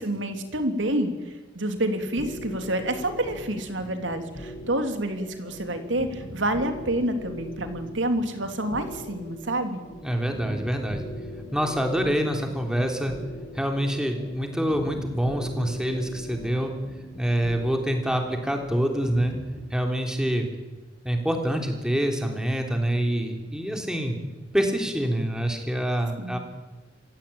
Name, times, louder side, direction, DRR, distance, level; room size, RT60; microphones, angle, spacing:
voice 1, 0.0-9.8 26.2-26.4, right 1 dB, 80° right, 7 dB, 3.0 m, -28 dB
sound 1, 2.2-19.6, equal, 45° left, 6.5 m, -41 dB
voice 2, 10.0-11.0 11.5-13.1 13.5-16.7 17.2-19.3 19.7-20.5 21.0-24.2 24.5-26.4, equal, 5° right, 3 dB, 3.3 m, -26 dB
26.5 x 16.5 x 8.8 m, 1.2 s
head